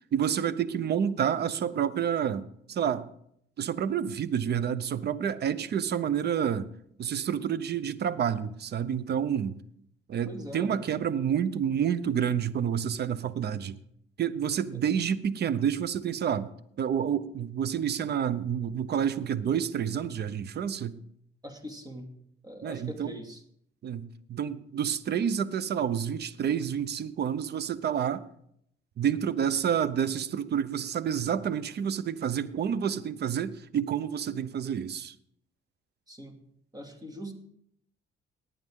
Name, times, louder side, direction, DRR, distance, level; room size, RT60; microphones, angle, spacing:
voice 1, 0.1-3.1 3.6-6.7 7.0-9.6 10.1-13.8 14.2-16.5 16.8-21.0 22.6-23.1 23.8-28.2 29.0-35.1, right 8 dB, 55° right, 16 dB, 0.8 m, -29 dB
voice 2, 10.3-10.7 14.7-14.8 21.4-22.1 22.4-23.4 36.1-36.4 36.7-37.3, equal, 20° right, 4 dB, 2.5 m, -41 dB
19.0 x 8.9 x 3.7 m, 0.71 s
cardioid pair, 90°, 20 cm